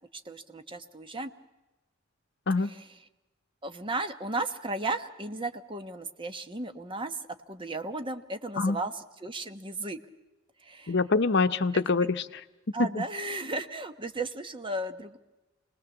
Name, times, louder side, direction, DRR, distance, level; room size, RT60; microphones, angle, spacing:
voice 1, 0.2-1.3 2.6-3.0 3.6-7.2 7.5-10.0 10.6-11.0 11.7-11.8 12.7-15.2, right 2 dB, 25° right, 8 dB, 1.2 m, -35 dB
voice 2, 10.9-12.2 12.8-13.0, left 3 dB, 60° left, 11 dB, 0.8 m, -25 dB
26.5 x 20.0 x 7.2 m, 1.1 s
head